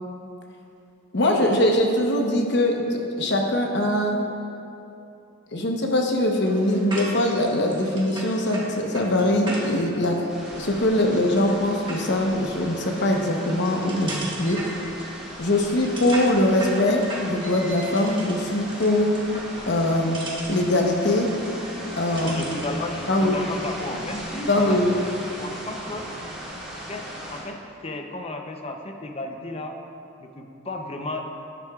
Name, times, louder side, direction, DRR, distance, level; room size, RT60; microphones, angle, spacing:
voice 1, 1.1-4.2 5.5-10.2 10.5-14.6 15.4-19.1 19.7-20.2 20.5-21.3 21.9-22.4 23.1-23.3 24.5-25.0, left 1 dB, 60° left, 2 dB, 1.0 m, -22 dB
sound 1, 6.4-22.8, right 2 dB, 25° right, 1.3 m, -39 dB
sound 2, 10.3-27.4, equal, 5° right, 1.8 m, -38 dB
voice 2, 22.2-24.8 25.4-26.1 26.9-29.8 30.2-31.2, left 2 dB, 30° left, 3 dB, 0.6 m, -34 dB
11.5 x 9.8 x 2.4 m, 2.8 s
head